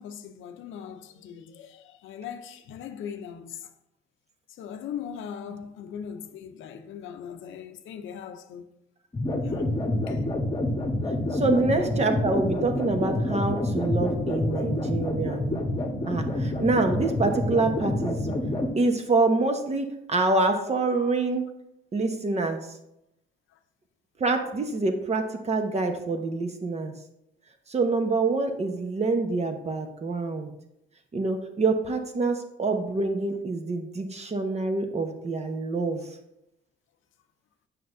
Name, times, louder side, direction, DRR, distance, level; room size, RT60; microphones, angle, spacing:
voice 1, 0.0-3.7 4.6-8.6 9.4-9.7 10.1-10.2 11.5-11.6 14.4-14.5, left 8 dB, 80° left, 0.6 m, -40 dB
sound 1, 9.1-18.7, left 1 dB, 25° left, 1.2 m, -27 dB
voice 2, 11.3-15.5 16.1-18.2 18.8-21.5 21.9-22.6 24.2-26.9 27.7-30.5 31.1-36.1, right 3 dB, 35° right, 1.0 m, -26 dB
7.6 x 5.9 x 2.6 m
cardioid pair, 90°, 20 cm